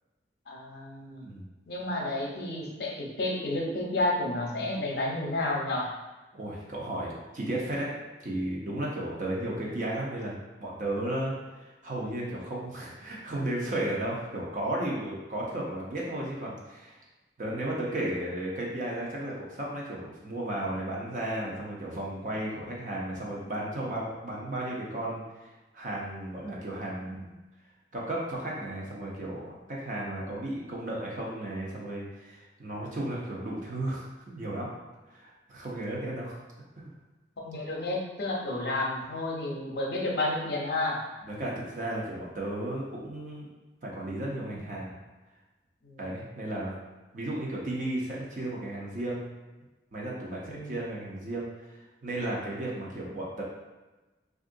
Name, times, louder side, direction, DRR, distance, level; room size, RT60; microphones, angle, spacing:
voice 1, 0.5-1.3 1.7-5.9 37.4-41.0 45.8-46.0 50.5-50.7, left 2 dB, 65° left, -1 dB, 0.6 m, -31 dB
voice 2, 6.3-7.9 8.2-17.0 17.4-27.3 27.9-34.7 35.1-36.5 36.8-36.9 41.2-43.5 43.8-45.0 46.0-46.7 47.1-49.2 49.9-51.5 52.0-53.4, right 1 dB, 45° right, -4 dB, 0.7 m, -34 dB
3.6 x 2.5 x 2.5 m, 1.2 s
head